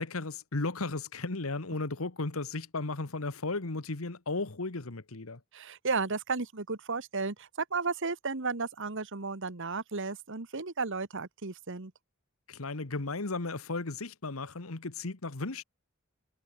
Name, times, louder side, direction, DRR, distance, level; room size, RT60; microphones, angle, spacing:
voice 1, 0.0-5.4 12.5-15.6, left 3 dB, 85° left, 1.5 m, -35 dB
voice 2, 5.5-11.9, right 4 dB, 65° right, 1.6 m, -34 dB
head